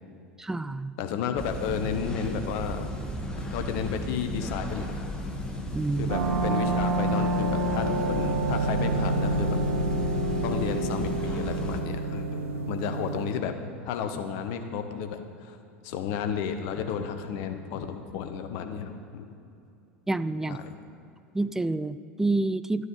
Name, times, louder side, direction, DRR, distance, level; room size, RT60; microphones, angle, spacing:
voice 1, 0.4-0.9 5.7-6.1 20.1-20.6 21.3-22.9, right 2 dB, 5° right, 14 dB, 0.3 m, -28 dB
voice 2, 1.0-2.9 3.4-5.1 6.0-9.6 10.4-13.5 13.8-15.6 15.8-19.2 20.5-20.8, left 7 dB, 50° left, 7 dB, 1.0 m, -32 dB
sound 1, 1.4-11.8, equal, 10° left, 1.5 m, -35 dB
sound 2, 6.1-13.3, right 2 dB, 75° right, 1.4 m, -28 dB
12.5 x 9.6 x 5.5 m, 2.6 s
figure-of-eight pair, 80°, 7 cm